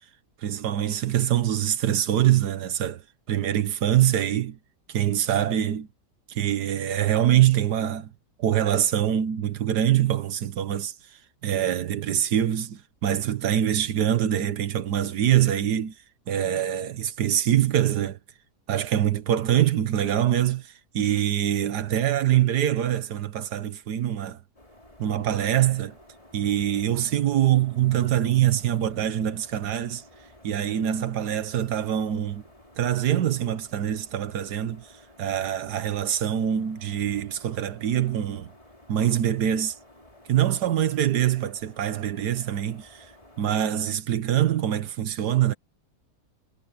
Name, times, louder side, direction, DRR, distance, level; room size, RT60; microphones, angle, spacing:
voice 1, 0.4-3.0 3.3-4.6 4.9-5.9 6.3-8.1 8.4-10.9 11.4-15.9 16.3-18.2 18.7-24.4 25.0-26.0 26.3-30.0 30.4-32.4 32.8-34.9 35.2-38.5 38.9-39.8 40.3-43.1 43.4-45.5, right 11 dB, 75° right, 1.5 m, -24 dB
sound 1, 24.6-43.5, left 1 dB, 20° left, 4.3 m, -53 dB
omnidirectional pair, 1.8 m